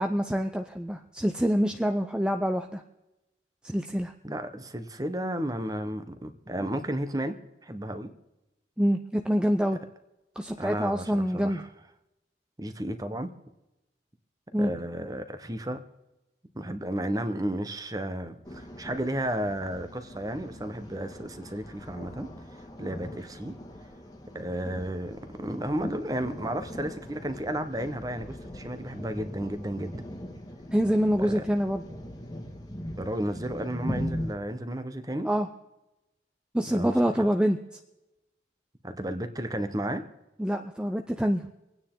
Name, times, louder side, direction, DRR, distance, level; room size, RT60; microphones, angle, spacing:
voice 1, 0.0-2.8 3.6-4.1 8.8-9.8 10.4-11.6 14.5-14.7 30.7-31.8 35.2-35.5 36.5-37.6 40.4-41.4, equal, 5° right, 5 dB, 0.5 m, -26 dB
voice 2, 4.2-7.3 7.6-8.1 10.6-11.6 12.6-13.3 14.6-15.8 16.5-22.3 22.8-23.5 24.3-30.0 31.2-31.4 33.0-35.3 36.7-37.2 38.8-40.0, right 1 dB, 20° right, 9 dB, 1.1 m, -33 dB
sound 1, 18.4-34.4, equal, 20° left, 1.7 m, -40 dB
26.0 x 9.6 x 3.8 m, 0.98 s
head